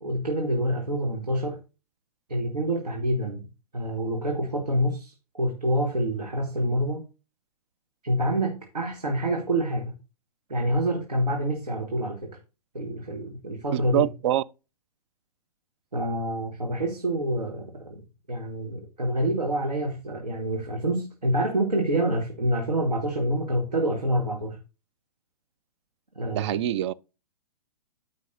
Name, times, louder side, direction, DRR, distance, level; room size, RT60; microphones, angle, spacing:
voice 1, 0.0-1.6 2.3-3.5 3.7-7.0 8.0-10.0 10.5-12.3 12.7-14.0 15.9-18.0 18.3-24.6 26.2-26.6, right 1 dB, 90° right, 1.7 m, -27 dB
voice 2, 13.7-14.4 26.3-26.9, right 12 dB, 45° right, 0.5 m, -25 dB
13.5 x 5.2 x 2.7 m
figure-of-eight pair, 120°, 20 cm